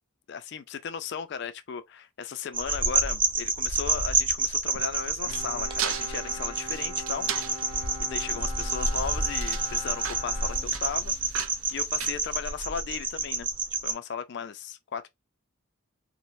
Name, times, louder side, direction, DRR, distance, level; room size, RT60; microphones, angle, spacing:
voice 1, 0.3-7.3 8.0-11.2 11.7-13.5 13.8-15.1, left 6 dB, 55° left, 0.4 m, -36 dB
sound 1, 2.5-13.9, right 3 dB, 25° right, 0.4 m, -29 dB
sound 2, 4.7-12.9, right 9 dB, 85° right, 0.4 m, -38 dB
Bowed string instrument, 5.2-11.4, equal, 45° right, 1.0 m, -42 dB
3.0 x 2.0 x 2.5 m
head